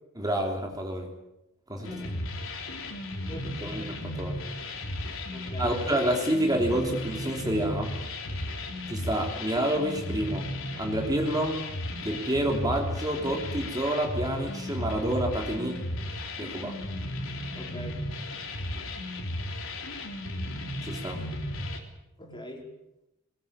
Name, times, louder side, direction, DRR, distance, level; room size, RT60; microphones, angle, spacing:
voice 1, 0.2-1.1 1.7-1.9 3.6-4.4 5.6-7.9 8.9-11.6 12.0-15.8 16.4-16.7 20.8-21.2, right 1 dB, 20° right, 2 dB, 3.3 m, -28 dB
voice 2, 1.7-2.1 3.3-3.8 5.3-5.7 17.5-18.0 19.6-19.7 21.2-21.3 22.2-22.7, equal, 20° left, 1 dB, 4.6 m, -42 dB
sound 1, 1.8-21.8, left 1 dB, 65° left, 4.0 m, -35 dB
22.5 x 20.5 x 8.8 m, 0.87 s
head